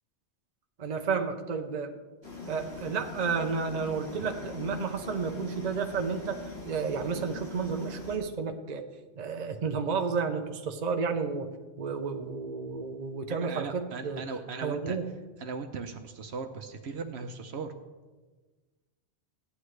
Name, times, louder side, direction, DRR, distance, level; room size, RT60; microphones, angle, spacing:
voice 1, 0.8-2.0 2.5-8.9 9.2-11.5 11.8-14.2 14.6-15.0, right 5 dB, 45° right, 5 dB, 0.8 m, -31 dB
sound 1, 2.2-8.2, left 3 dB, 70° left, 2.7 m, -42 dB
voice 2, 13.3-15.0 15.4-17.7, right 4 dB, 75° right, 6 dB, 1.0 m, -38 dB
15.5 x 9.8 x 3.2 m, 1.3 s
omnidirectional pair, 1.1 m